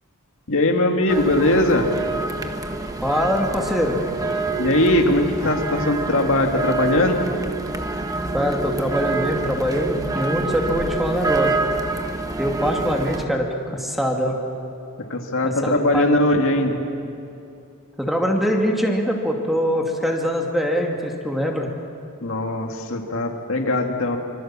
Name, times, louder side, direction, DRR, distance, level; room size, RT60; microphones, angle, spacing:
voice 1, 0.5-1.9 4.6-7.2 15.1-16.8 22.2-24.2, left 1 dB, 65° left, 3 dB, 2.2 m, -20 dB
sound 1, 1.1-13.3, right 3 dB, 15° right, 1.3 m, -27 dB
voice 2, 3.0-4.0 8.3-11.5 12.4-14.4 15.4-16.0 18.0-21.7, equal, ahead, 1 dB, 2.4 m, -23 dB
26.0 x 25.5 x 7.5 m, 2.7 s
head